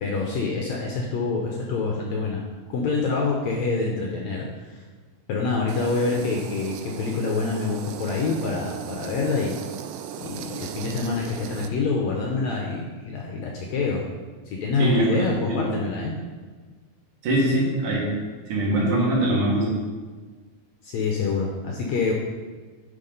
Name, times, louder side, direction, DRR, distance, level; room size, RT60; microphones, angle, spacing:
voice 1, 0.0-2.4 2.7-4.8 5.3-9.6 10.2-14.0 14.5-16.2 20.8-22.1, left 4 dB, 80° left, -1 dB, 1.6 m, -26 dB
sound 1, 5.7-11.7, right 9 dB, 90° right, 2.3 m, -37 dB
voice 2, 14.8-15.7 17.2-18.1 18.5-19.8, right 1 dB, 65° right, -5 dB, 3.1 m, -22 dB
9.7 x 3.8 x 5.3 m, 1.4 s
omnidirectional pair, 4.0 m